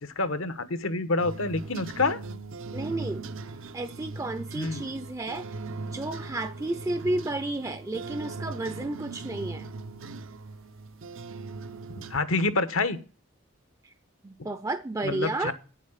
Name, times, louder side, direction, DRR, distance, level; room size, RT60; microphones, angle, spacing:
voice 1, 0.0-2.2 4.5-4.8 12.1-13.0 15.0-15.5, left 3 dB, 80° left, 1.2 m, -27 dB
sound 1, 1.2-12.2, right 3 dB, 75° right, 0.7 m, -39 dB
voice 2, 2.7-3.2 3.7-5.5 5.9-9.7 13.8-13.9 14.2-15.5, right 2 dB, 15° right, 0.4 m, -32 dB
9.1 x 7.4 x 7.2 m
head